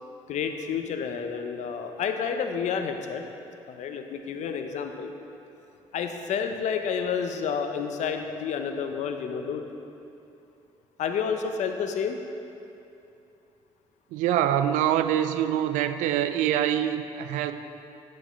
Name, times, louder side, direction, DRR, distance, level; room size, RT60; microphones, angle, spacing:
voice 1, 0.3-3.3 3.7-5.1 5.9-9.6 11.0-12.2, left 6 dB, 70° left, 6 dB, 0.7 m, -30 dB
voice 2, 14.1-17.5, right 11 dB, 85° right, 10 dB, 0.4 m, -25 dB
9.2 x 5.3 x 5.6 m, 2.8 s
supercardioid pair, 65°, 12 cm